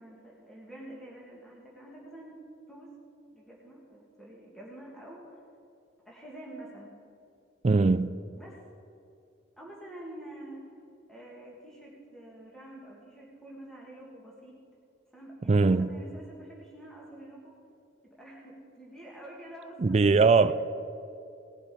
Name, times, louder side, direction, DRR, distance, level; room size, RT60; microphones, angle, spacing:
voice 1, 0.0-2.4 2.7-3.0 3.3-5.4 6.0-7.0 8.3-8.6 9.6-10.8 11.1-14.5 15.1-17.5 18.0-20.1 20.3-20.5, right 1 dB, ahead, 2.2 m, -47 dB
voice 2, 7.6-8.2 15.5-15.9 19.8-20.5, right 4 dB, 35° right, 0.4 m, -21 dB
18.5 x 8.2 x 5.1 m
head